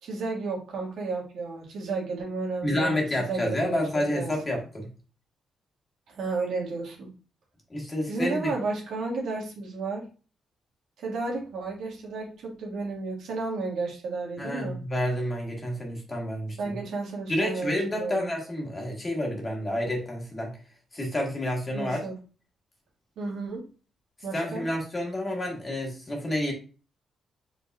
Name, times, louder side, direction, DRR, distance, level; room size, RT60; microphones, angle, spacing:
voice 1, 0.0-4.6 6.1-7.1 8.1-10.0 11.0-14.8 16.6-18.3 21.7-22.1 23.2-23.6 24.2-24.7, right 3 dB, 80° right, -1 dB, 1.7 m, -32 dB
voice 2, 2.6-4.9 7.7-8.5 14.4-16.8 17.3-20.6 20.9-22.0 24.3-26.5, left 1 dB, 20° left, 0 dB, 1.4 m, -29 dB
5.4 x 4.0 x 2.4 m, 0.36 s
cardioid pair, 140°, 0 cm